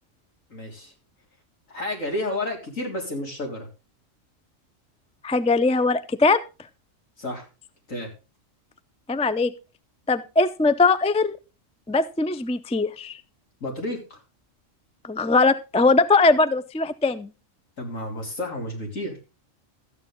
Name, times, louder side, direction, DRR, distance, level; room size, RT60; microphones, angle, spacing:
voice 1, 0.5-0.9 1.7-3.7 7.2-7.5 7.9-8.1 13.6-14.2 17.8-19.2, left 1 dB, 75° left, 1 dB, 4.0 m, -31 dB
voice 2, 5.2-6.4 9.1-9.5 10.1-11.4 11.9-13.2 15.0-17.3, left 3 dB, 10° left, 13 dB, 0.3 m, -21 dB
13.0 x 9.3 x 3.7 m, 0.31 s
omnidirectional pair, 1.4 m